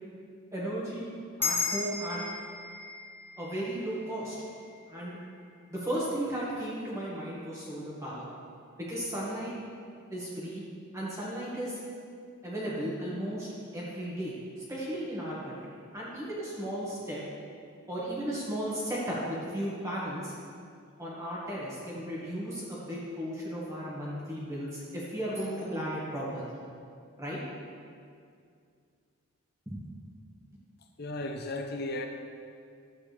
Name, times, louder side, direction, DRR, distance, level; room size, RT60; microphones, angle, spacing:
voice 1, 0.5-2.2 3.4-4.4 4.9-5.2 5.7-8.3 8.8-9.5 10.1-10.6 10.9-11.8 12.4-17.2 17.9-20.3 21.0-26.6 27.2-27.4 29.6-29.8, equal, 15° right, -7 dB, 1.7 m, -35 dB
sound 1, 1.4-6.1, left 4 dB, 10° left, 0.7 m, -37 dB
voice 2, 31.0-32.1, left 2 dB, 45° left, 4 dB, 0.8 m, -35 dB
12.5 x 8.5 x 3.4 m, 2.3 s
head